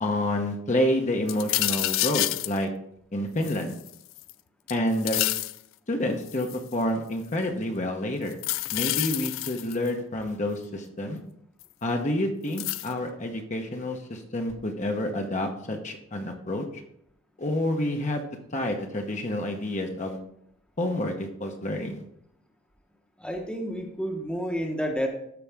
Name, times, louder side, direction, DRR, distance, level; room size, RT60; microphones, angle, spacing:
voice 1, 0.0-2.7 3.1-3.7 4.7-5.3 5.9-8.4 8.7-11.2 11.8-16.8 17.4-18.2 18.5-20.2 20.8-22.0, left 1 dB, 35° left, 3 dB, 0.9 m, -28 dB
sound 1, 1.3-2.6 3.4-4.3 4.7-5.6 6.3-6.7 8.3-9.9 11.6-11.7 12.6-12.9, left 17 dB, 65° left, 0.3 m, -28 dB
voice 2, 23.2-25.1, equal, 5° left, 2 dB, 0.9 m, -30 dB
13.0 x 4.9 x 3.4 m, 0.73 s
head